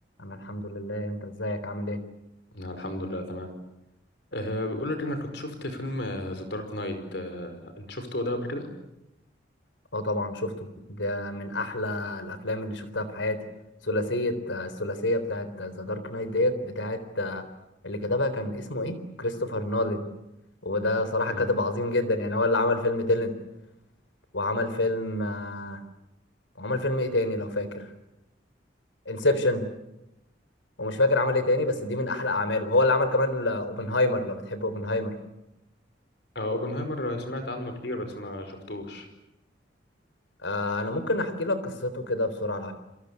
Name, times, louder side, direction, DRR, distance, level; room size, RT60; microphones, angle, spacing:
voice 1, 0.2-2.0 9.9-13.4 13.8-17.4 17.8-20.1 20.6-23.3 24.3-25.8 26.6-27.8 29.1-29.7 30.8-35.2 40.4-42.7, left 2 dB, 85° left, 11 dB, 3.8 m, -27 dB
voice 2, 2.5-3.5 4.3-8.7 21.3-21.4 36.4-39.1, left 1 dB, 60° left, 7 dB, 5.2 m, -33 dB
28.5 x 23.5 x 8.4 m, 0.91 s
head